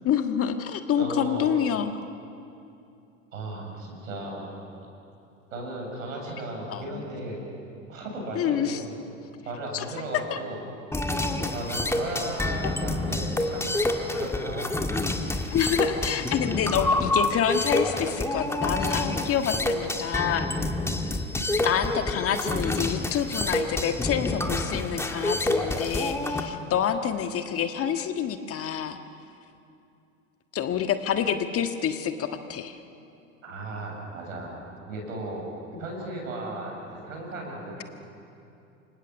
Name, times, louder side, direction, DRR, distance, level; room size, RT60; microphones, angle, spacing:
voice 1, 0.0-1.9 6.7-7.0 8.3-8.8 9.7-9.8 10.3-10.4 15.5-20.5 21.6-29.0 30.5-32.8 35.7-35.8, left 8 dB, 35° left, 7 dB, 1.5 m, -27 dB
voice 2, 1.0-1.6 3.3-4.5 5.5-7.4 7.9-8.9 9.4-10.6 11.5-13.8 14.1-14.7 33.4-34.6 34.9-35.4 35.8-37.8, right 1 dB, 75° right, 0 dB, 7.7 m, -35 dB
sound 1, 10.9-26.4, left 2 dB, 5° left, 1.9 m, -28 dB
29.5 x 25.5 x 7.2 m, 2.7 s
figure-of-eight pair, 80°, 40 cm